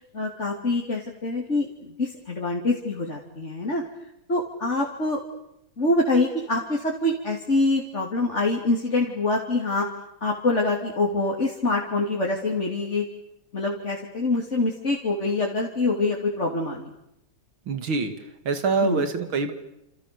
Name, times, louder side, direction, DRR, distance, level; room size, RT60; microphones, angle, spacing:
voice 1, 0.1-1.7 2.0-3.8 4.3-5.2 5.8-9.9 10.2-13.1 13.5-16.9 18.8-19.0, left 2 dB, 35° left, -1 dB, 3.4 m, -25 dB
voice 2, 17.7-18.1 18.4-19.5, right 4 dB, 90° right, 8 dB, 3.2 m, -25 dB
29.5 x 28.5 x 7.0 m, 0.81 s
omnidirectional pair, 2.2 m